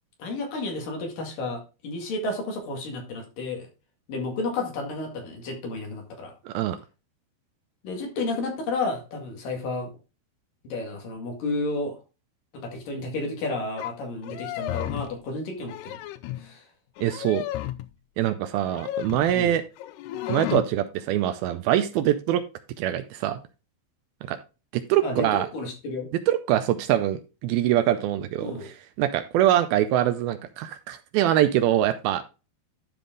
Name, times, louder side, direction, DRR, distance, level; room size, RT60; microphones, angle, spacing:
voice 1, 0.2-3.7 4.1-6.3 7.8-9.9 10.6-12.0 12.5-16.0 16.4-16.7 19.3-19.6 25.0-25.3 25.5-26.1 28.4-28.7, left 2 dB, 60° left, 2 dB, 3.6 m, -31 dB
voice 2, 6.5-6.8 17.0-17.5 18.2-19.6 20.3-22.4 22.8-23.4 24.3-24.4 24.7-25.5 26.3-28.5 29.0-32.2, right 12 dB, 80° right, 10 dB, 2.3 m, -23 dB
sound 1, 13.8-13.9 14.2-15.2 15.6-16.5 17.0-17.9 18.6-19.4 19.8-20.7, left 14 dB, 80° left, 2.6 m, -33 dB
12.0 x 5.1 x 3.8 m, 0.30 s
omnidirectional pair, 4.6 m